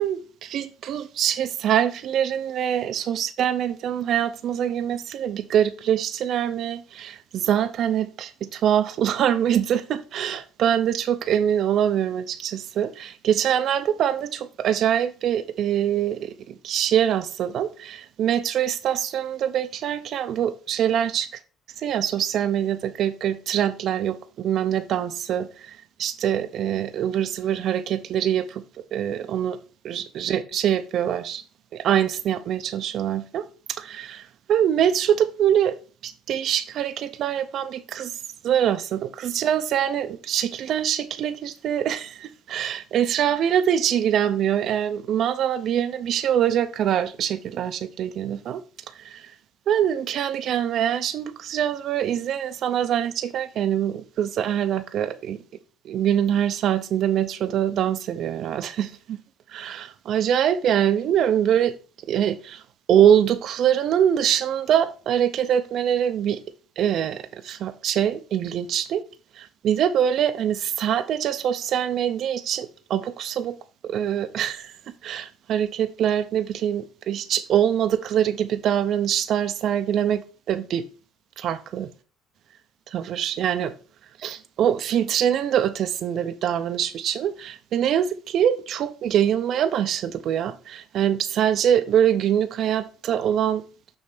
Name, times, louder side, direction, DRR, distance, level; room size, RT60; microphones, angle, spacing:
voice 1, 0.0-21.3 21.8-28.6 28.9-29.6 29.8-31.4 31.7-35.8 36.0-38.2 38.4-49.3 49.7-55.4 55.8-59.2 59.5-61.7 62.1-62.6 62.9-66.4 66.8-69.0 69.4-73.6 73.8-74.7 75.0-80.9 81.4-81.9 82.9-83.7 84.2-93.6, right 9 dB, 60° right, 0.5 m, -24 dB
6.2 x 3.2 x 5.9 m
cardioid pair, 100°, 0 cm